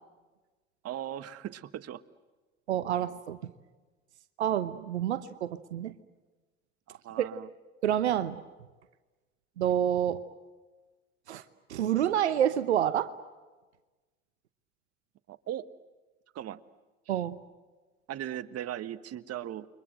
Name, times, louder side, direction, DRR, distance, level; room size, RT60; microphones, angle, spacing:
voice 1, 0.8-2.0 6.9-7.5 15.3-15.7 16.3-16.6 17.1-17.2 18.1-19.7, right 11 dB, 50° right, 13 dB, 1.4 m, -38 dB
voice 2, 2.7-3.4 4.4-5.9 7.8-8.4 9.6-10.2 11.3-11.4 11.7-13.1 17.1-17.4, right 10 dB, 90° right, 12 dB, 1.0 m, -28 dB
29.5 x 24.0 x 7.9 m, 1.2 s
hypercardioid pair, 65°, 33 cm